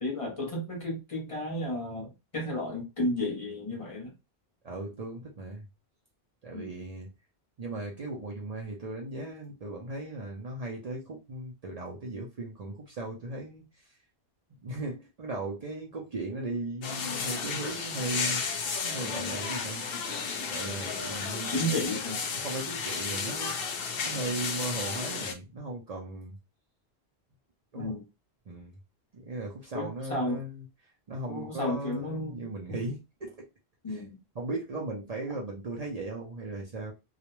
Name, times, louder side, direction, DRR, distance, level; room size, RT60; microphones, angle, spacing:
voice 1, 0.0-4.1 6.5-6.7 19.9-20.1 21.5-22.2 27.7-28.0 29.7-30.4 31.3-32.5 33.8-34.2, left 1 dB, 40° left, 0.6 m, -33 dB
voice 2, 4.6-5.6 6.4-7.1 7.6-13.9 14.6-18.4 18.8-19.9 20.5-21.7 22.3-23.6 24.0-26.4 27.7-28.0 28.5-28.7 29.1-30.7 31.1-33.5 33.9-34.0 34.3-36.9, right 2 dB, 45° right, 0.6 m, -37 dB
sound 1, 16.8-25.3, left 5 dB, 70° left, 0.7 m, -33 dB
2.4 x 2.1 x 2.9 m
omnidirectional pair, 1.1 m